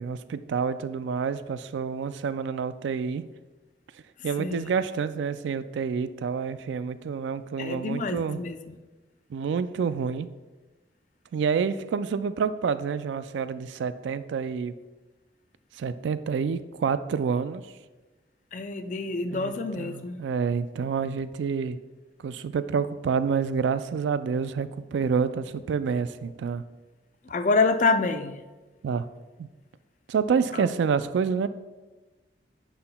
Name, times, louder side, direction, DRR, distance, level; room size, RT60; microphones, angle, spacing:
voice 1, 0.0-3.3 4.2-8.4 9.3-10.3 11.3-14.7 15.8-17.6 19.3-21.8 22.2-26.6 28.8-29.1 29.4-29.5 30.1-31.5, right 6 dB, 90° right, 0.3 m, -28 dB
voice 2, 4.4-4.7 7.6-8.8 18.5-20.2 27.3-28.4 30.5-30.7, left 3 dB, 45° left, 0.4 m, -27 dB
9.7 x 5.7 x 2.2 m
head